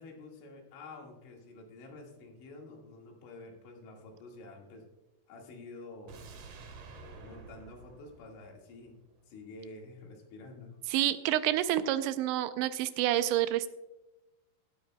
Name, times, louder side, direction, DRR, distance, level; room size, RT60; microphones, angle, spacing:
voice 1, 0.0-4.8 5.3-6.2 6.9-9.0 9.3-10.7, left 2 dB, 85° left, 0 dB, 4.3 m, -49 dB
sound 1, 6.1-9.2 9.5-9.6, right 4 dB, 55° right, 2.9 m, -50 dB
voice 2, 10.9-13.7, right 13 dB, 85° right, 12 dB, 2.8 m, -28 dB
16.0 x 12.5 x 2.2 m, 1.0 s
omnidirectional pair, 5.3 m